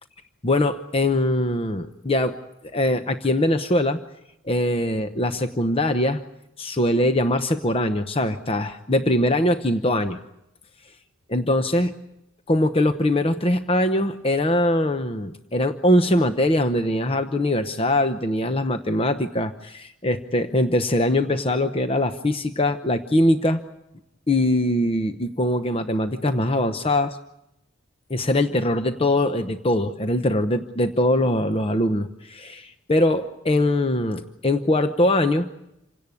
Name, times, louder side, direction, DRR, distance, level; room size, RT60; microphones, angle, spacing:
voice 1, 0.4-2.4 2.7-4.0 4.5-6.2 6.6-10.2 11.3-11.9 12.5-23.6 24.3-27.2 28.1-35.5, left 1 dB, 25° left, 8 dB, 0.8 m, -22 dB
27.5 x 17.5 x 8.4 m, 0.86 s
head